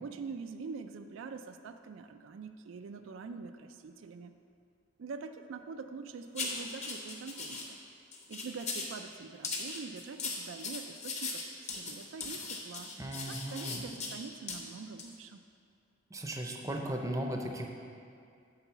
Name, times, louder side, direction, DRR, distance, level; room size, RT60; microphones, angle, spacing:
voice 1, 0.0-4.3 5.0-7.8 8.3-12.9 13.3-15.4, right 5 dB, 80° right, 8 dB, 0.4 m, -44 dB
sound 1, 6.3-7.6 8.1-8.9 9.4-14.2 14.5-14.6 15.0-15.1, left 3 dB, 35° left, 1.0 m, -38 dB
voice 2, 13.0-13.9 16.1-17.7, right 1 dB, 15° right, 2 dB, 0.6 m, -36 dB
9.0 x 4.0 x 6.8 m, 2.4 s
head